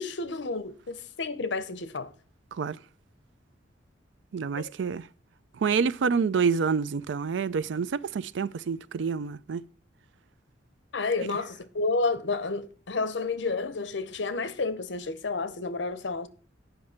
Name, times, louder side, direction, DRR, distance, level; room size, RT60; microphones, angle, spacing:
voice 1, 0.0-2.1 4.6-4.7 10.9-16.3, left 3 dB, 75° left, 0.8 m, -30 dB
voice 2, 4.3-5.1 5.6-9.6, right 5 dB, 75° right, 0.4 m, -27 dB
8.6 x 5.5 x 5.7 m
head